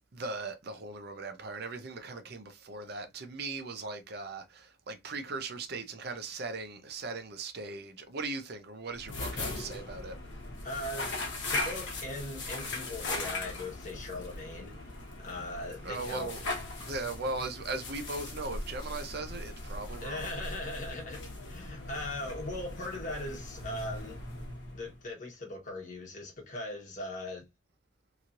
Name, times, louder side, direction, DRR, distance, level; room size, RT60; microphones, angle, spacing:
voice 1, 0.1-10.2 15.8-16.5 16.8-20.3, right 3 dB, 50° right, 0.5 m, -38 dB
sound 1, 8.9-25.0, left 2 dB, 60° left, 0.9 m, -39 dB
voice 2, 10.6-11.1 11.5-14.7 15.2-16.3 20.0-24.2 24.7-27.4, left 1 dB, 40° left, 1.2 m, -39 dB
3.0 x 2.7 x 2.5 m
head